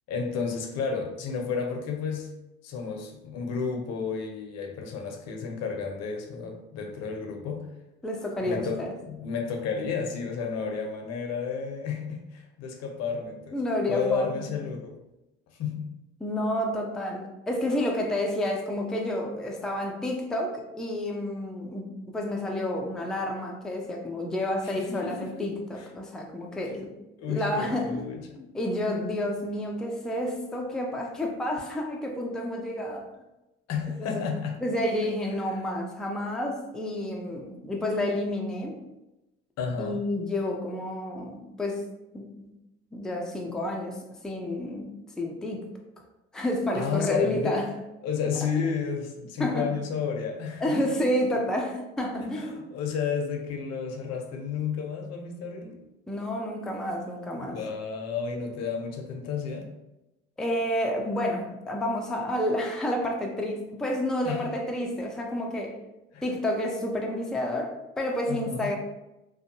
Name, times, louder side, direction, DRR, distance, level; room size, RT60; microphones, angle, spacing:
voice 1, 0.1-2.3 2.6-7.7 8.4-13.6 13.9-15.0 15.6-15.9 24.6-25.4 25.8-25.9 27.2-28.4 33.7-34.6 39.6-40.0 46.7-47.6 48.0-50.8 52.3-55.8 57.5-59.7 64.2-64.5 66.1-66.3 68.3-68.8, left 5 dB, 60° left, 3 dB, 0.6 m, -32 dB
voice 2, 8.0-8.9 13.5-14.5 16.2-26.9 27.3-28.0 28.4-33.1 34.0-34.2 34.6-38.8 39.8-41.8 42.1-42.5 42.9-45.7 46.3-47.7 49.4-49.7 50.6-52.6 56.1-57.6 60.4-65.8 66.2-68.8, left 1 dB, ahead, 0 dB, 0.4 m, -30 dB
2.5 x 2.2 x 2.7 m, 0.94 s
hypercardioid pair, 70°, 29 cm